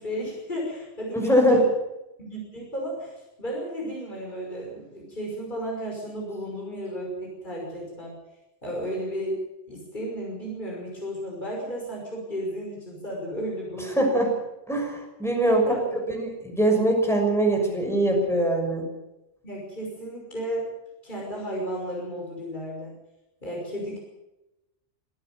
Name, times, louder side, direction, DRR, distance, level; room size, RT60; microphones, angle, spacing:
voice 1, 0.0-1.7 2.2-8.2 8.6-14.1 15.4-16.0 19.4-20.7 21.0-22.9 23.4-24.0, equal, 40° left, -2 dB, 6.0 m, -33 dB
voice 2, 1.1-1.6 14.0-14.3 14.7-15.6 16.1-18.9, right 1 dB, ahead, 1 dB, 6.3 m, -22 dB
24.5 x 13.0 x 9.4 m, 0.95 s
omnidirectional pair, 1.2 m